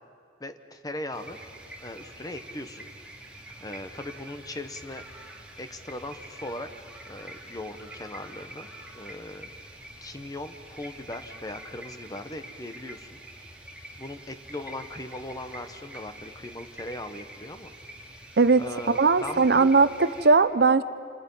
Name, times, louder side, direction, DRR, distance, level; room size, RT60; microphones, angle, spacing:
voice 1, 0.4-1.4 1.8-2.9 3.6-5.0 5.6-6.7 7.1-9.8 10.0-13.2 14.0-17.7 18.6-19.7, left 1 dB, 20° left, 8 dB, 1.1 m, -39 dB
sound 1, 1.1-20.3, right 1 dB, 5° right, 2.6 m, -46 dB
voice 2, 18.4-20.8, right 4 dB, 60° right, 13 dB, 0.7 m, -20 dB
29.5 x 27.0 x 5.6 m, 2.2 s
head